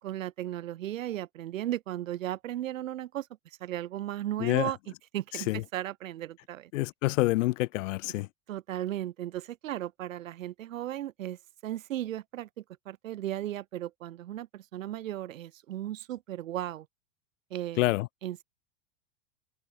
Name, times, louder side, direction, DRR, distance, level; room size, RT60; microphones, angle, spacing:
voice 1, 0.0-3.3 3.6-4.8 5.1-6.7 8.5-16.9 17.5-17.9 18.2-18.4, right 13 dB, 85° right, 3.0 m, -36 dB
voice 2, 4.4-4.7 5.5-5.6 6.7-8.3 17.8-18.1, left 19 dB, 75° left, 0.7 m, -27 dB
supercardioid pair, 135°, 38 cm